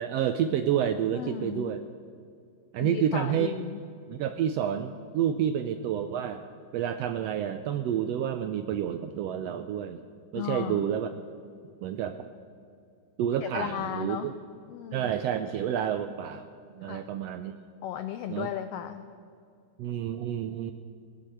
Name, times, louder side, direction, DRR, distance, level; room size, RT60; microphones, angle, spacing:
voice 1, 0.0-1.8 2.7-3.5 4.1-6.4 6.7-10.0 10.3-11.1 11.8-12.2 13.2-14.3 14.9-16.5 16.7-17.6 18.3-18.5 19.8-20.7, right 9 dB, 80° right, 8 dB, 1.5 m, -29 dB
voice 2, 1.1-1.7 2.8-3.8 10.3-10.8 13.4-14.3 14.7-15.1 16.8-17.0 17.8-19.0, left 11 dB, 90° left, 9 dB, 1.3 m, -35 dB
20.5 x 8.2 x 7.7 m, 2.3 s
omnidirectional pair, 3.4 m